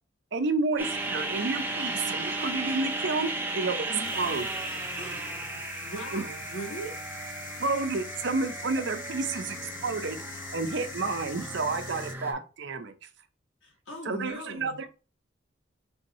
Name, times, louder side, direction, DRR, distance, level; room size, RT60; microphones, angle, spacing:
voice 1, 0.3-3.9 4.2-4.5 6.1-6.2 7.6-10.2 10.5-12.9 14.0-14.9, right 3 dB, 65° right, 8 dB, 0.6 m, -30 dB
sound 1, 0.8-12.3, right 2 dB, 10° right, 0.6 m, -35 dB
sound 2, 4.0-12.1, left 6 dB, 45° left, 0.6 m, -44 dB
voice 2, 4.9-5.2 5.5-7.0 13.6-14.8, right 1 dB, 90° left, -3 dB, 2.1 m, -40 dB
3.5 x 2.7 x 4.1 m, 0.33 s
head